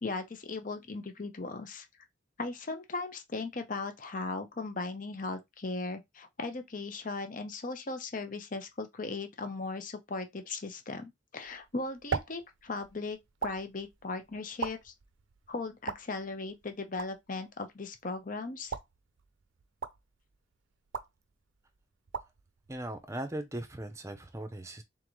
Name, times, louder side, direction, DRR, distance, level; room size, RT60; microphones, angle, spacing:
voice 1, 0.0-1.9 2.4-14.9 15.5-18.7, left 3 dB, 40° left, 0.7 m, -38 dB
sound 1, 11.4-23.6, right 5 dB, 80° right, 0.6 m, -43 dB
voice 2, 22.7-24.8, right 1 dB, 15° right, 0.6 m, -39 dB
3.8 x 3.7 x 3.1 m
head